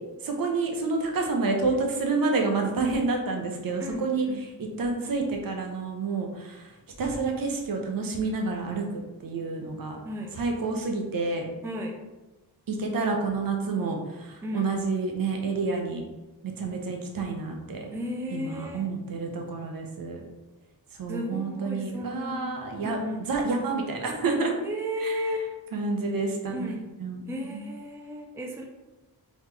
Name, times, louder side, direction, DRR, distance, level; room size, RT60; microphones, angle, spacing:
voice 1, 0.2-4.3 4.8-6.7 7.0-10.0 10.4-11.5 12.7-16.0 16.4-17.9 18.3-20.2 21.0-23.0 23.3-24.5 25.0-25.2 25.7-26.7 27.0-27.2 27.5-27.6, right 3 dB, 60° right, 2 dB, 0.8 m, -29 dB
voice 2, 3.8-4.4 10.0-10.4 11.6-11.9 14.4-14.7 17.9-18.9 21.1-22.6 22.8-23.2 24.6-25.5 26.5-26.9 27.3-28.7, left 1 dB, 5° right, 0 dB, 0.4 m, -34 dB
4.0 x 3.1 x 3.2 m, 1.1 s
wide cardioid pair, 125°, 39 cm